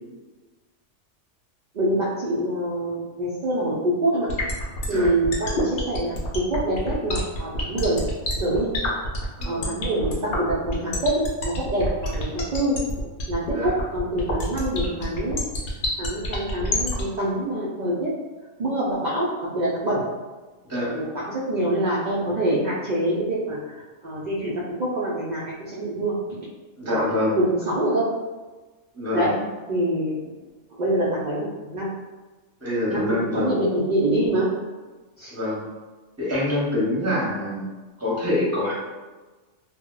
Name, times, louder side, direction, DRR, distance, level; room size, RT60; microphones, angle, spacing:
voice 1, 1.7-4.3 4.9-8.0 8.4-8.7 9.4-12.8 13.3-15.4 16.0-18.1 18.6-20.0 20.8-26.1 26.9-27.1 27.4-28.1 29.1-29.3 29.7-30.3 30.8-31.9 32.8-34.5 35.2-35.4, right 1 dB, 60° right, -6 dB, 0.4 m, -25 dB
sound 1, 4.3-17.0, left 2 dB, 60° left, 0.7 m, -28 dB
voice 2, 9.4-9.8 13.5-13.7 20.6-20.9 26.8-27.4 28.9-29.4 32.6-33.5 35.3-35.6 36.2-37.7 38.0-38.7, left 1 dB, 15° right, -7 dB, 0.7 m, -25 dB
2.1 x 2.1 x 3.7 m, 1.3 s
omnidirectional pair, 1.3 m